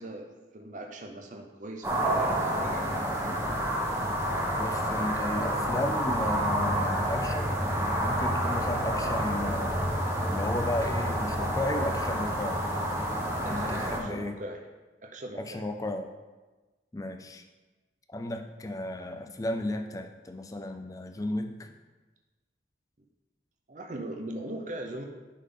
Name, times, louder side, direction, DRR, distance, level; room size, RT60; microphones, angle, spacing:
voice 1, 0.0-2.9 13.4-14.6 15.0-15.6 23.7-25.1, right 1 dB, 45° right, 2 dB, 0.6 m, -40 dB
sound 1, 1.8-14.0, equal, 15° right, 1.0 m, -29 dB
voice 2, 4.6-7.7 8.0-9.9 10.3-12.6 13.5-14.3 15.3-16.1 16.9-17.4 18.1-21.7, left 1 dB, 20° left, 6 dB, 0.4 m, -34 dB
10.0 x 3.7 x 3.7 m, 1.2 s
head